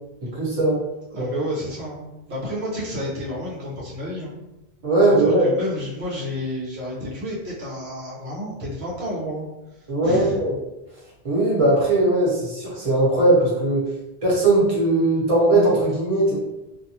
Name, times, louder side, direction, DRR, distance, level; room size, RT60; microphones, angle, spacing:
voice 1, 0.3-0.8 1.2-1.3 4.8-5.5 9.9-10.5 11.2-13.8 14.2-16.4, right 2 dB, 35° right, -6 dB, 1.0 m, -19 dB
voice 2, 1.1-4.3 5.1-9.5 10.0-10.4, equal, 80° right, -6 dB, 1.0 m, -30 dB
2.5 x 2.2 x 2.8 m, 0.97 s
omnidirectional pair, 1.1 m